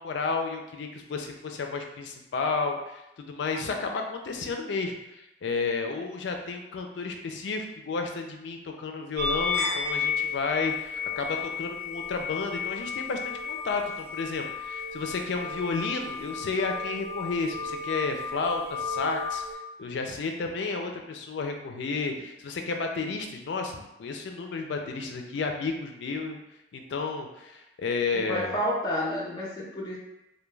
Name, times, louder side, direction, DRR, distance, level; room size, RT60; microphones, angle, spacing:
voice 1, 0.0-19.4 19.8-26.4 26.7-28.6, left 4 dB, 80° left, 3 dB, 0.4 m, -32 dB
sound 1, 9.2-19.5, left 5 dB, 55° right, 0.8 m, -33 dB
voice 2, 28.1-30.0, equal, 20° left, -4 dB, 0.5 m, -30 dB
2.2 x 2.2 x 3.1 m, 0.91 s
head